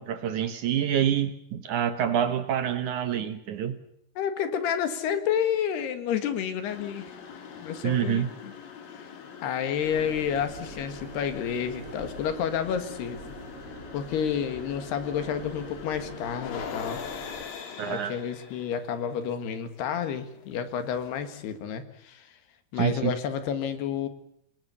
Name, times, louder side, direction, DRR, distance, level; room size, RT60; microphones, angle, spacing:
voice 1, 0.0-3.8 7.8-8.3 17.8-18.2 22.8-23.1, right 9 dB, 65° right, 10 dB, 2.2 m, -27 dB
voice 2, 4.2-7.1 7.6-8.5 9.4-13.3 13.9-17.0 17.8-22.3 22.7-24.1, left 8 dB, 85° left, 10 dB, 3.9 m, -30 dB
sound 1, 6.6-21.6, left 7 dB, 65° left, 3.8 m, -43 dB
sound 2, 9.8-17.5, right 3 dB, 40° right, 3.5 m, -44 dB
27.5 x 19.5 x 7.0 m, 0.74 s
omnidirectional pair, 4.5 m